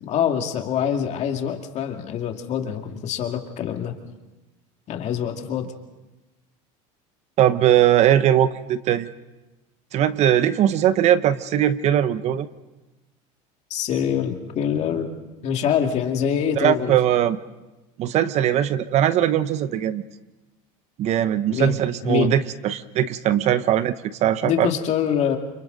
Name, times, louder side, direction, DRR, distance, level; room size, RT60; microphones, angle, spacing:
voice 1, 0.0-3.9 4.9-5.7 13.7-15.1 15.4-17.0 21.5-22.3 24.4-25.4, left 8 dB, 45° left, 4 dB, 2.3 m, -25 dB
voice 2, 7.4-9.1 9.9-12.5 16.6-17.4 18.0-20.0 21.0-24.7, right 11 dB, 40° right, 14 dB, 0.7 m, -20 dB
29.5 x 25.0 x 3.9 m, 1.1 s
supercardioid pair, 135°, 17 cm